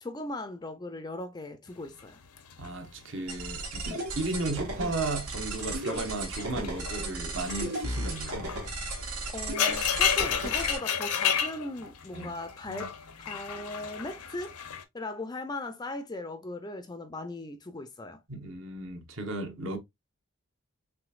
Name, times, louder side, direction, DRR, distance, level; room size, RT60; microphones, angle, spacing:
voice 1, 0.0-2.2 9.3-12.9 13.2-14.6 14.9-18.2, left 2 dB, 20° left, 0.4 m, -38 dB
sound 1, 2.0-4.4 4.7-5.1 5.5-14.8, left 8 dB, 90° left, 0.7 m, -33 dB
voice 2, 2.6-8.5 12.1-12.3 12.6-12.9 18.3-19.8, right 2 dB, 55° right, 1.0 m, -35 dB
sound 2, 3.3-10.8, right 2 dB, 85° right, 1.7 m, -35 dB
4.9 x 3.4 x 2.4 m
head